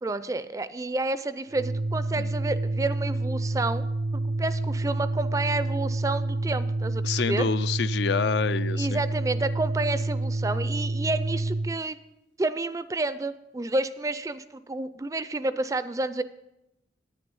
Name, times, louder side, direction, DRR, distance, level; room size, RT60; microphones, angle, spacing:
voice 1, 0.0-3.9 4.1-7.5 8.8-12.0 12.4-16.2, right 2 dB, 20° right, 14 dB, 0.4 m, -30 dB
Organ, 1.5-11.8, right 2 dB, 80° right, 0.4 m, -28 dB
voice 2, 7.0-9.0, left 6 dB, 75° left, 14 dB, 0.4 m, -27 dB
10.0 x 9.4 x 5.4 m, 0.89 s
head